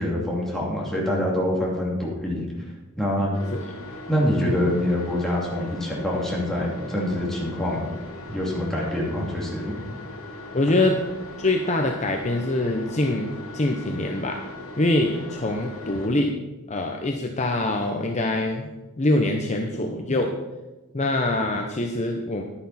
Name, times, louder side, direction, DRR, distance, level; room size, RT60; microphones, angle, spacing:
voice 1, 0.0-2.5 3.0-3.3 4.1-7.9 8.3-9.8, left 1 dB, ahead, -5 dB, 2.7 m, -25 dB
sound 1, 3.3-16.1, left 2 dB, 85° left, 2.3 m, -39 dB
voice 2, 10.5-11.0 11.4-14.4 14.8-16.3 16.7-18.7 19.0-20.3 20.9-22.4, left 2 dB, 35° left, 3 dB, 0.8 m, -24 dB
11.0 x 9.9 x 4.2 m, 1.1 s
head